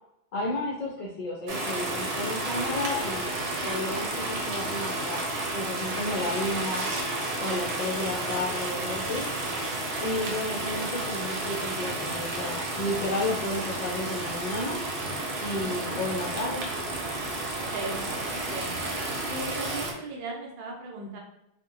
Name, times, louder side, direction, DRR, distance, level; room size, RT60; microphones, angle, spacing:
voice 1, 0.3-6.9 7.4-9.3 10.0-14.8 15.4-16.6, left 2 dB, 55° left, -4 dB, 0.5 m, -32 dB
sound 1, 1.5-19.9, right 2 dB, 90° right, 0.9 m, -31 dB
voice 2, 15.4-15.7 17.7-18.8 19.3-21.2, right 3 dB, 60° right, -1 dB, 0.7 m, -37 dB
2.8 x 2.1 x 2.5 m, 0.82 s
omnidirectional pair, 1.1 m